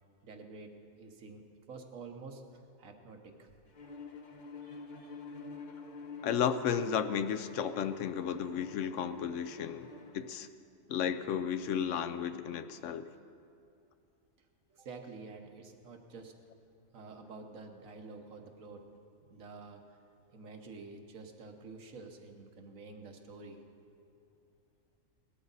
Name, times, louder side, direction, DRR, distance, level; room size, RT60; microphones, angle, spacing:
voice 1, 0.2-2.4 2.8-3.5 4.6-5.2 10.7-10.8 14.7-16.3 16.9-18.9 19.3-20.0 20.3-23.6, right 4 dB, 85° right, 4 dB, 1.5 m, -49 dB
Bowed string instrument, 3.7-10.3, left 4 dB, 45° left, 0.8 m, -48 dB
voice 2, 6.2-9.9 10.1-10.5 10.9-13.1, left 8 dB, 70° left, 12 dB, 0.9 m, -33 dB
18.0 x 12.5 x 4.0 m, 2.5 s
omnidirectional pair, 1.3 m